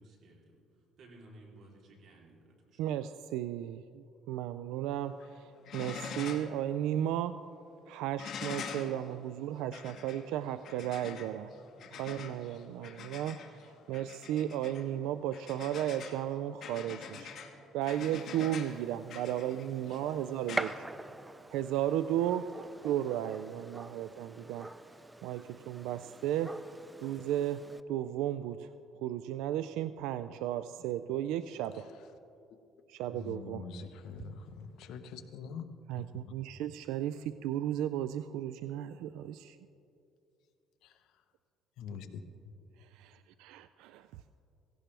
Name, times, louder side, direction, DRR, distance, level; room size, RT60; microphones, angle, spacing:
voice 1, 0.0-3.0, right 1 dB, 60° right, -1 dB, 3.3 m, -57 dB
voice 2, 2.8-7.4 7.9-11.5 11.9-13.4 13.7-17.4 17.7-20.8 21.5-22.5 22.8-24.7 25.2-26.6 27.0-28.7 29.0-31.9 32.9-33.6 35.9-39.6 42.8-44.1, right 11 dB, 85° right, 12 dB, 0.3 m, -34 dB
sound 1, 5.0-5.3 5.6-6.6 6.9-7.0 8.2-21.6 23.0-23.1, left 6 dB, 55° left, 1.6 m, -45 dB
Gunshot gunfire, 17.8-27.8, right 1 dB, 10° right, 0.4 m, -45 dB
voice 3, 33.1-35.6 40.8-41.0 41.8-42.2, left 6 dB, 75° left, 8 dB, 1.0 m, -44 dB
17.0 x 16.5 x 3.4 m, 2.6 s
cardioid pair, 110°, 0 cm